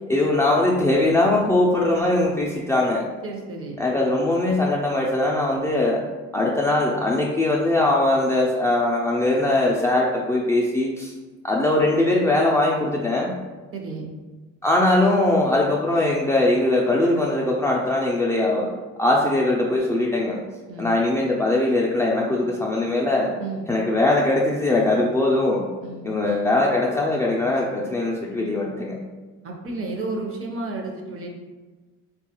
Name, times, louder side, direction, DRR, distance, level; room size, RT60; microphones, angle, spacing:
voice 1, 0.1-3.0 3.8-6.0 6.3-11.1 11.4-13.3 14.6-18.7 19.0-20.4 20.8-23.3 23.7-25.6 26.0-28.9, left 2 dB, 10° left, -4 dB, 0.3 m, -21 dB
voice 2, 3.2-3.8 13.7-14.1 20.7-20.9 23.4-23.7 25.8-26.1 29.4-31.3, right 3 dB, 45° right, 1 dB, 0.7 m, -32 dB
3.5 x 2.3 x 2.9 m, 1.3 s
cardioid pair, 90°, 30 cm